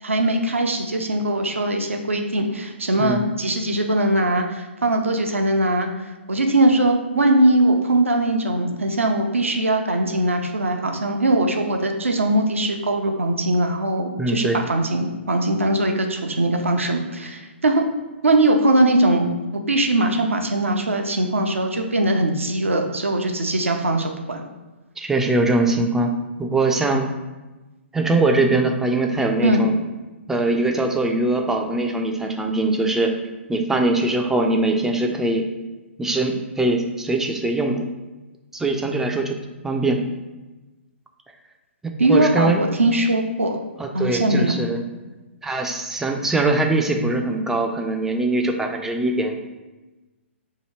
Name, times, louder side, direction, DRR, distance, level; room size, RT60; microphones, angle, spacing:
voice 1, 0.0-5.9 6.3-17.8 18.2-19.3 19.7-24.5 29.4-29.6 42.0-43.6 43.9-44.5, right 1 dB, 85° right, 3 dB, 0.5 m, -20 dB
voice 2, 14.2-14.7 25.0-26.1 26.4-27.1 27.9-29.7 30.3-33.1 33.5-35.5 36.0-37.9 38.5-39.4 39.6-40.0 42.1-42.6 43.8-44.8 45.4-49.4, right 2 dB, 5° right, 3 dB, 0.3 m, -22 dB
2.8 x 2.7 x 4.3 m, 1.1 s
figure-of-eight pair, 125°, 7 cm